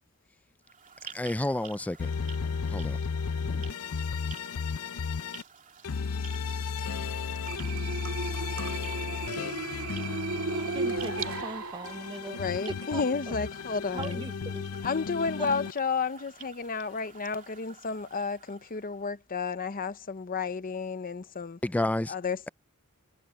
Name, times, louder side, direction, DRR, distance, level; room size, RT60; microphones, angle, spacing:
sound 1, 0.6-19.1, right 7 dB, 40° right, 2.7 m, -50 dB
voice 1, 1.1-2.1 2.7-3.0 21.6-22.1, left 1 dB, 5° left, 0.4 m, -29 dB
sound 2, 2.0-5.4 5.8-11.4 11.8-15.7, left 5 dB, 90° left, 0.6 m, -34 dB
sound 3, 7.4-12.4, right 4 dB, 70° right, 2.6 m, -35 dB
voice 2, 10.4-13.0 13.9-14.8 15.4-15.5, right 2 dB, 20° right, 0.7 m, -40 dB
voice 3, 12.2-14.2 14.8-21.6 22.1-22.5, left 5 dB, 40° left, 0.8 m, -32 dB
head